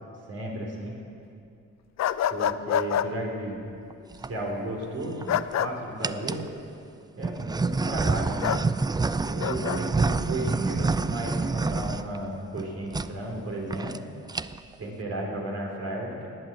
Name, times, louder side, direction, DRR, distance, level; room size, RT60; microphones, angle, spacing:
voice 1, 0.3-1.0 2.3-3.6 4.3-5.3 5.6-6.4 7.2-8.4 9.2-14.1 14.8-16.3, right 1 dB, 55° right, -1 dB, 3.9 m, -34 dB
sound 1, 2.0-3.1 5.3-5.7 8.4-8.6 9.4-9.8, left 10 dB, 65° left, 0.5 m, -26 dB
sound 2, 3.9-4.3 5.0-5.5 6.0-6.5 7.2-12.6 12.9-13.1 13.4-13.5 13.7-14.0 14.3-14.7, right 3 dB, 15° right, 0.3 m, -28 dB
19.0 x 9.1 x 7.4 m, 2.5 s
cardioid pair, 100°, 30 cm